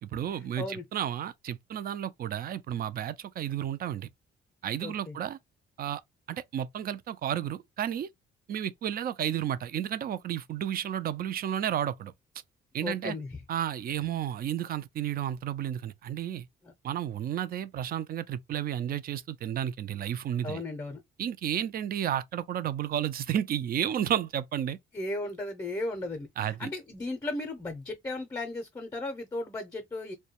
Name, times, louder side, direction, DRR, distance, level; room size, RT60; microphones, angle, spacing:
voice 1, 0.0-4.1 4.6-5.4 5.8-6.0 6.3-8.1 8.5-12.1 12.7-13.2 13.5-16.5 16.8-20.6 21.2-24.8 26.4-26.7, right 10 dB, 50° right, 0.4 m, -32 dB
voice 2, 4.8-5.2 12.8-13.3 16.6-16.7 20.4-21.0 24.9-30.1, left 2 dB, 20° left, 0.6 m, -35 dB
2.3 x 2.2 x 2.8 m
cardioid pair, 90°, 20 cm